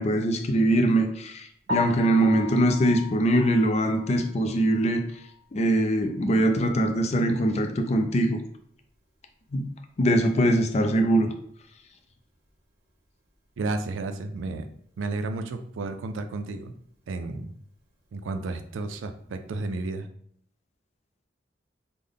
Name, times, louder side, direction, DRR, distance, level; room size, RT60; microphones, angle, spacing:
voice 1, 0.0-5.0 5.5-8.4 9.5-9.7 10.0-11.3, right 1 dB, 35° left, 5 dB, 0.4 m, -22 dB
Piano, 1.7-5.6 6.0-6.1 6.6-6.7 7.1-7.2 10.3-10.4 18.8-19.1, left 3 dB, 55° right, 0.9 m, -37 dB
voice 2, 13.6-14.7 15.0-16.7 17.1-17.5 18.1-20.1, right 3 dB, 85° right, 8 dB, 0.4 m, -32 dB
3.4 x 2.1 x 3.7 m, 0.66 s
head